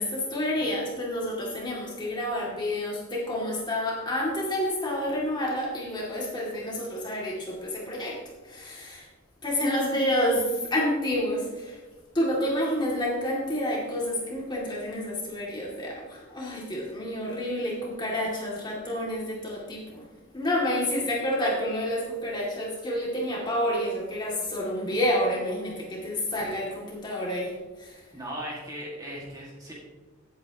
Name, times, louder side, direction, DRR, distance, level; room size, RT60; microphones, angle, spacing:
voice 1, 0.0-9.1 9.4-11.8 12.1-20.1 20.3-27.5 27.8-28.0, left 1 dB, 20° left, -3 dB, 2.4 m, -29 dB
voice 2, 28.1-29.7, equal, 15° right, -4 dB, 1.9 m, -37 dB
15.5 x 8.6 x 3.0 m, 1.3 s
head